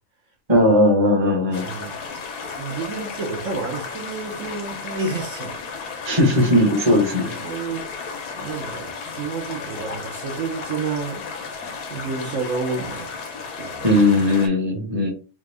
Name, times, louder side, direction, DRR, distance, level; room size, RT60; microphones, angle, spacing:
voice 1, 0.5-1.7 6.0-7.4 13.8-15.1, left 1 dB, 20° right, 1.0 m, -18 dB
sound 1, 1.5-14.5, left 5 dB, 85° left, 1.4 m, -34 dB
voice 2, 1.5-2.0 2.5-5.6 7.4-7.9 8.4-11.3 11.9-13.1 13.5-13.9, right 4 dB, 60° right, 1.0 m, -30 dB
3.4 x 2.4 x 3.3 m
omnidirectional pair, 1.6 m